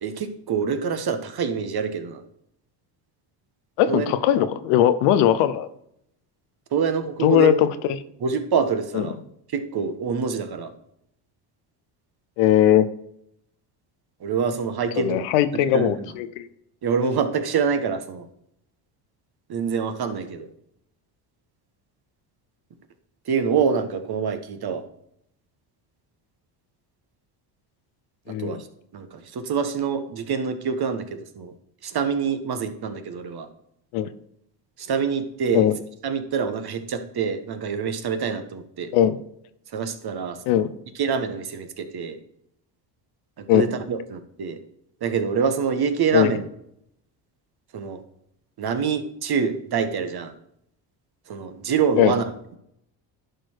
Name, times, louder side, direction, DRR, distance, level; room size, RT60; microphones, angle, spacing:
voice 1, 0.0-2.2 3.9-4.1 6.7-7.5 8.2-9.2 9.5-10.7 14.2-15.2 15.5-16.1 16.8-18.3 19.5-20.5 23.3-24.8 28.3-28.7 28.9-31.5 31.8-33.5 34.8-35.7 36.0-38.9 39.7-40.7 40.9-42.2 43.4-44.6 45.0-46.5 47.7-48.0 48.6-50.3 51.3-52.2, right 6 dB, 50° right, 9 dB, 1.4 m, -26 dB
voice 2, 3.8-5.7 7.2-7.7 8.9-9.0 12.4-12.9 15.0-16.5 28.3-28.6 33.9-34.1 35.5-35.7 38.9-39.2 40.5-40.7 43.5-43.7 46.1-46.3 52.0-52.1, left 11 dB, 85° left, 12 dB, 0.8 m, -19 dB
11.0 x 4.6 x 4.6 m, 0.74 s
supercardioid pair, 75°, 49 cm